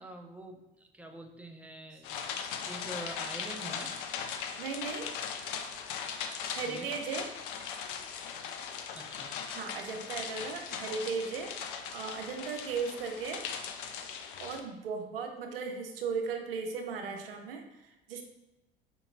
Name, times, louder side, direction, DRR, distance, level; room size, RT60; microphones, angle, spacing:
voice 1, 0.0-2.2 2.6-4.0 6.6-7.0 8.9-9.4, right 1 dB, 5° right, 3 dB, 0.5 m, -45 dB
sound 1, 2.0-14.6, left 7 dB, 65° left, 0.5 m, -39 dB
voice 2, 4.6-5.1 6.5-7.3 9.5-13.4 14.4-18.2, right 5 dB, 75° right, 4 dB, 0.6 m, -37 dB
5.1 x 2.8 x 2.5 m, 1.0 s
figure-of-eight pair, 60°, 29 cm